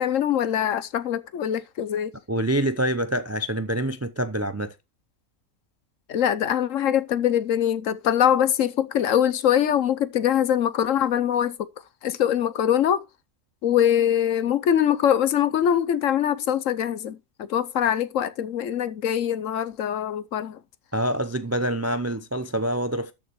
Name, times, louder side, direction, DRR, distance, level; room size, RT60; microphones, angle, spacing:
voice 1, 0.0-2.1 6.1-11.7 12.0-13.0 13.6-20.6, left 10 dB, 65° left, 1.1 m, -23 dB
voice 2, 2.3-4.7 20.9-23.1, right 1 dB, 25° right, 0.3 m, -26 dB
13.0 x 6.9 x 3.1 m
omnidirectional pair, 1.5 m